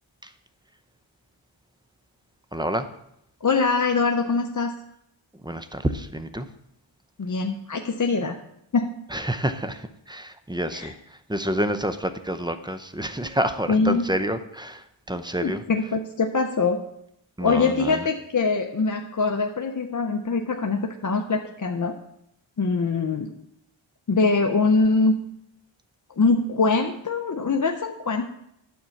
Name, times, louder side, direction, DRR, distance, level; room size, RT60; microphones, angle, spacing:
voice 1, 2.5-2.9 5.4-6.5 9.1-10.9 11.3-15.6 17.4-18.1, right 1 dB, 10° right, 9 dB, 0.7 m, -28 dB
voice 2, 3.4-4.7 7.2-8.4 8.7-8.9 10.7-10.9 13.7-14.0 15.4-16.8 17.4-22.0 22.6-23.3 24.1-25.2 26.2-28.3, left 4 dB, 40° left, 3 dB, 0.7 m, -23 dB
9.4 x 4.4 x 7.1 m, 0.78 s
cardioid pair, 55°, 49 cm